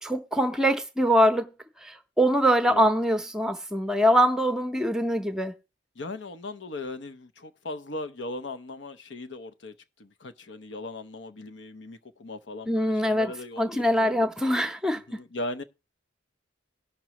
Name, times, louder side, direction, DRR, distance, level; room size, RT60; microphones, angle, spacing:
voice 1, 0.0-1.5 1.8-5.5 12.7-13.3 13.6-15.2, equal, 5° right, 0.8 m, -23 dB
voice 2, 5.9-14.2 14.9-15.6, left 2 dB, 65° left, 0.8 m, -38 dB
18.0 x 6.1 x 3.0 m
head